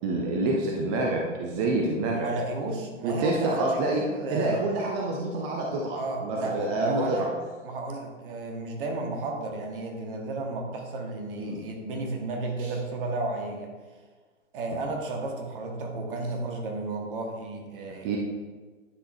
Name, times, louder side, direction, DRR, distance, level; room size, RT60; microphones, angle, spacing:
voice 1, 0.0-2.3 3.0-4.0 4.3-7.3 11.4-11.6 12.6-12.7 14.7-14.8 18.0-18.2, right 2 dB, 15° right, -1 dB, 0.4 m, -27 dB
voice 2, 2.1-4.6 5.9-7.3 7.6-13.7 14.5-18.2, right 2 dB, 45° right, 1 dB, 1.4 m, -33 dB
9.7 x 5.9 x 2.6 m, 1.4 s
figure-of-eight pair, 110°, 38 cm